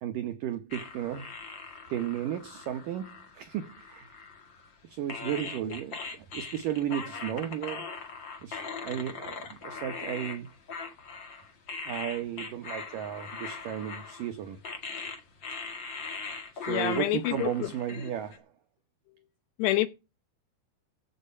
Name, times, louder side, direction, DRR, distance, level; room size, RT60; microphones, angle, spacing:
voice 1, 0.0-1.3 1.9-4.2 4.8-7.9 8.4-10.5 11.9-14.6 16.5-18.4, right 11 dB, 85° right, 1.9 m, -34 dB
sound 1, 0.7-4.7 5.1-18.4, left 4 dB, 55° left, 1.2 m, -41 dB
voice 2, 16.7-17.7 19.6-19.9, left 15 dB, 75° left, 2.9 m, -27 dB
15.5 x 6.7 x 5.5 m
omnidirectional pair, 5.4 m